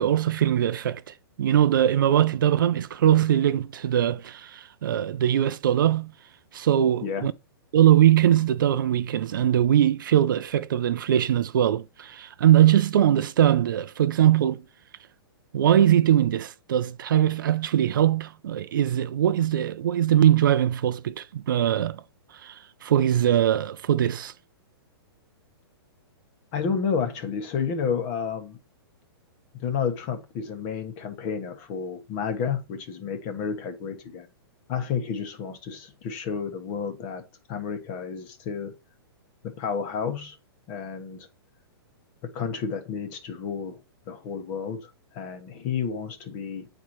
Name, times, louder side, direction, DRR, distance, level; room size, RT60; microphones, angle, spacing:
voice 1, 0.0-6.1 6.5-7.3 7.7-14.6 15.5-22.0 22.3-24.3, right 11 dB, 55° right, 0.5 m, -21 dB
voice 2, 26.5-28.6 29.5-34.3 34.7-38.7 39.4-40.4 40.7-41.3 42.2-43.8 44.1-46.7, left 6 dB, 25° left, 1.2 m, -31 dB
9.4 x 4.4 x 3.1 m
hypercardioid pair, 175°, 13 cm